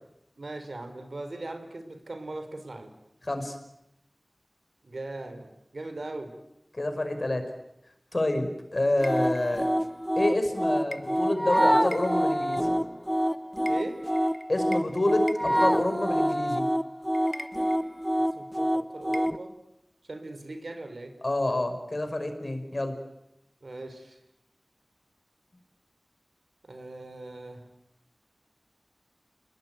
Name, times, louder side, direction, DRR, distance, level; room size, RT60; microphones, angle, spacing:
voice 1, 0.4-2.9 4.8-6.3 13.7-14.0 18.2-19.6 20.1-21.1 23.6-24.2 26.6-27.6, right 2 dB, 80° right, 8 dB, 4.2 m, -39 dB
voice 2, 3.2-3.6 6.7-7.5 8.1-9.7 10.2-12.6 14.5-16.6 21.2-22.9, left 1 dB, 50° left, 7 dB, 5.2 m, -28 dB
sound 1, 9.0-19.4, equal, ahead, 1.0 m, -26 dB
30.0 x 21.0 x 9.1 m, 0.86 s
wide cardioid pair, 60°, 0 cm